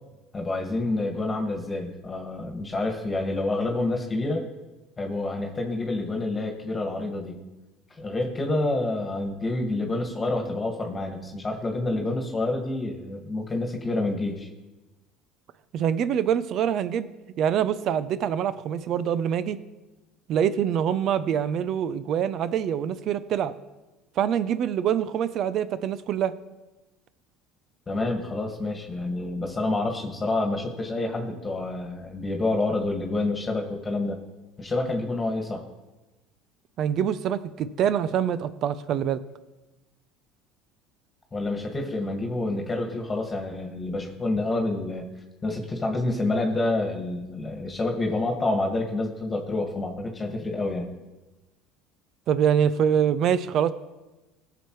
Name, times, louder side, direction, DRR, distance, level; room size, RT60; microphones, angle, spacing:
voice 1, 0.3-4.4 5.0-7.4 8.0-14.5 27.9-34.2 34.6-35.6 41.3-45.1 45.4-50.9, left 2 dB, 20° left, 1 dB, 1.9 m, -28 dB
voice 2, 15.7-17.1 17.4-19.6 20.3-23.6 24.2-26.3 36.8-39.2 52.3-53.7, right 9 dB, 55° right, 15 dB, 0.6 m, -25 dB
17.0 x 7.0 x 3.2 m, 1.1 s
hypercardioid pair, 75°, 0 cm